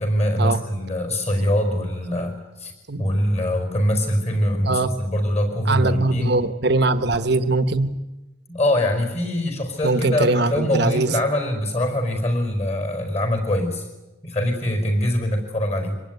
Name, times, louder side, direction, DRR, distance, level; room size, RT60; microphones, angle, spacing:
voice 1, 0.0-2.7 3.0-6.4 8.5-13.9 14.2-16.0, left 1 dB, 35° left, 6 dB, 5.1 m, -23 dB
voice 2, 5.7-7.9 9.8-11.1, right 2 dB, 55° right, 10 dB, 1.2 m, -21 dB
25.0 x 19.5 x 9.4 m, 1.0 s
head